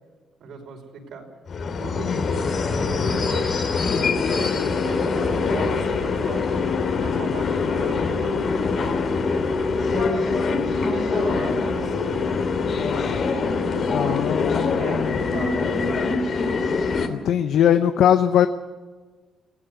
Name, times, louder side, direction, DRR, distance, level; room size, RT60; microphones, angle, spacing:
voice 1, 0.4-1.3 1.8-6.6 7.0-9.4 9.9-12.3 13.3-16.0, right 4 dB, 70° right, 3 dB, 5.4 m, -37 dB
sound 1, 1.5-17.1, left 4 dB, 55° left, 3.0 m, -24 dB
voice 2, 13.9-15.1 17.1-18.5, left 10 dB, 75° left, 9 dB, 0.8 m, -21 dB
21.0 x 16.5 x 8.2 m, 1.4 s
cardioid pair, 90°, 0 cm